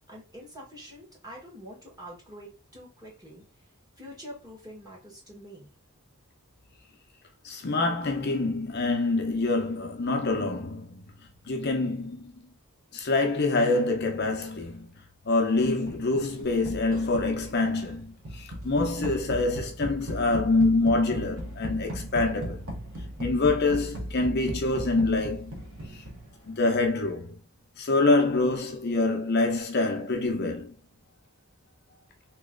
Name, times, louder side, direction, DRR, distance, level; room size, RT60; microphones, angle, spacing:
voice 1, 0.1-3.4 4.0-5.7, equal, 15° right, 1.5 m, -45 dB
voice 2, 7.4-11.2 11.4-12.5 12.9-14.9 15.3-22.6 23.2-25.6 25.9-26.0 26.4-27.3 27.8-30.7, left 3 dB, 45° left, 0.6 m, -26 dB
sound 1, 15.6-26.5, equal, 70° right, 1.3 m, -38 dB
3.0 x 3.0 x 3.7 m
head